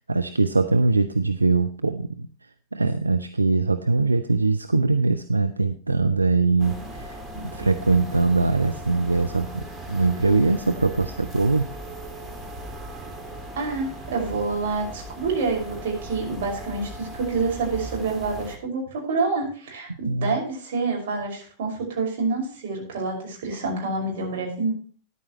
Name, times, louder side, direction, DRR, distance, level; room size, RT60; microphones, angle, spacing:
voice 1, 0.1-2.3 2.7-11.7 20.1-20.4, right 3 dB, 80° right, 9 dB, 0.6 m, -22 dB
sound 1, 6.6-18.6, right 1 dB, 15° right, 2.1 m, -38 dB
voice 2, 13.5-24.7, right 4 dB, 55° right, 0 dB, 5.9 m, -27 dB
13.5 x 11.0 x 3.1 m, 0.43 s
figure-of-eight pair, 90°, 0 cm